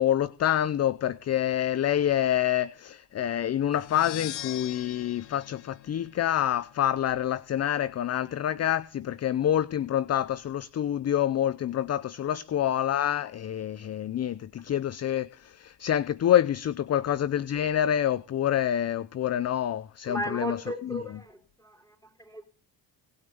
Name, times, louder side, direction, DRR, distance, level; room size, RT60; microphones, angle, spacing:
voice 1, 0.0-21.2, left 11 dB, 35° left, 0.5 m, -27 dB
sound 1, 3.7-6.6, left 13 dB, 65° left, 1.6 m, -41 dB
voice 2, 20.1-21.4 21.6-22.4, right 1 dB, 5° left, 4.4 m, -35 dB
18.0 x 6.2 x 6.9 m
supercardioid pair, 60°, 49 cm